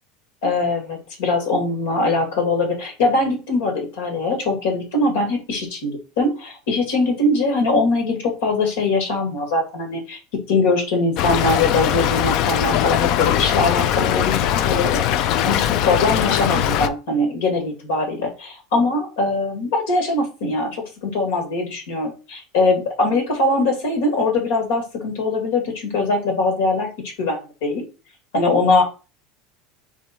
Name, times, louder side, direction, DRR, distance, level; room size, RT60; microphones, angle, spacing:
voice 1, 0.4-10.2 10.5-15.0 15.4-26.9 27.2-27.8 28.3-28.8, left 2 dB, 85° left, 3 dB, 1.9 m, -21 dB
Stream / Trickle dribble, 11.2-16.9, left 11 dB, 55° left, 0.4 m, -20 dB
3.6 x 3.2 x 4.3 m, 0.33 s
supercardioid pair, 135°, 0 cm